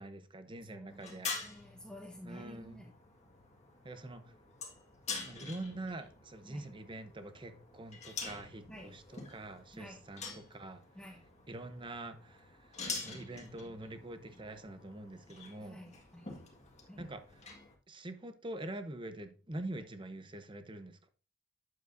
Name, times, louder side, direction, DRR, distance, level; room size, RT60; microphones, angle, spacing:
voice 1, 0.0-1.3 2.2-2.8 3.8-4.2 5.2-10.8 11.5-12.5 13.0-15.8 17.0-17.2 17.9-21.1, right 1 dB, 25° right, 0.8 m, -45 dB
voice 2, 0.7-2.9 6.4-6.7 8.7-8.9 9.7-10.0 10.9-11.2 15.6-16.2 16.9-17.1, equal, 5° left, 1.2 m, -51 dB
sound 1, 0.9-17.7, left 4 dB, 35° left, 1.7 m, -47 dB
9.4 x 7.2 x 2.6 m
head